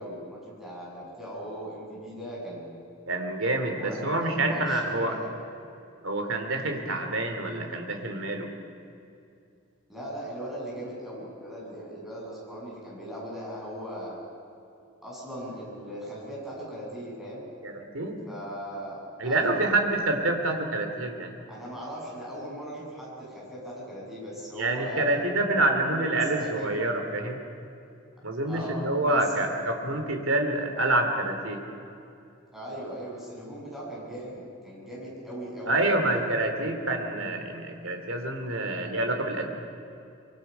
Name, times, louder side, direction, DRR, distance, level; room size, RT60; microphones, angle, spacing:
voice 1, 0.0-2.8 3.8-5.3 9.9-14.3 15.0-17.4 18.3-19.6 21.5-25.2 26.1-26.7 28.5-29.4 32.5-36.3, equal, ahead, -6 dB, 7.7 m, -39 dB
voice 2, 3.1-5.1 6.0-8.5 17.6-18.2 19.2-21.3 24.6-27.4 28.2-31.6 35.7-39.5, right 2 dB, 65° right, 4 dB, 2.8 m, -27 dB
25.0 x 23.5 x 5.7 m, 2.6 s
head